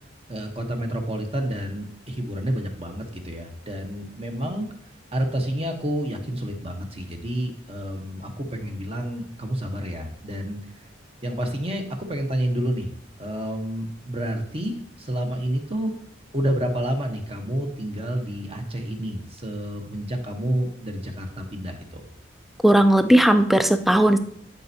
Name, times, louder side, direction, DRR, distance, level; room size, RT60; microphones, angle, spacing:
voice 1, 0.3-4.7 5.1-10.6 11.2-12.9 13.2-15.9 16.3-22.0, right 1 dB, 30° right, 3 dB, 1.1 m, -29 dB
voice 2, 22.6-24.2, right 1 dB, ahead, 9 dB, 0.4 m, -16 dB
12.5 x 5.3 x 2.8 m, 0.68 s
head